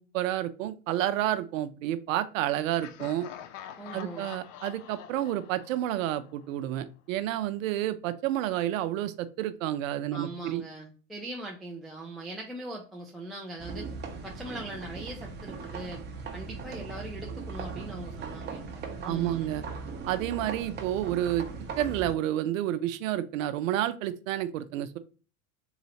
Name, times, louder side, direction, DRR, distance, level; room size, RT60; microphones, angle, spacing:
voice 1, 0.0-3.3 3.9-10.6 19.0-19.6 20.1-21.5 21.8-25.0, right 12 dB, 70° right, 12 dB, 0.7 m, -30 dB
Laughter, 2.8-6.6, left 10 dB, 65° left, 0.6 m, -46 dB
voice 2, 3.8-4.3 10.1-13.9 14.2-16.0 16.3-18.7 19.0-19.5, right 1 dB, ahead, -3 dB, 0.4 m, -40 dB
sound 1, 13.6-22.1, right 4 dB, 25° right, 0.9 m, -39 dB
3.9 x 3.0 x 4.1 m, 0.37 s
hypercardioid pair, 110°, 40 cm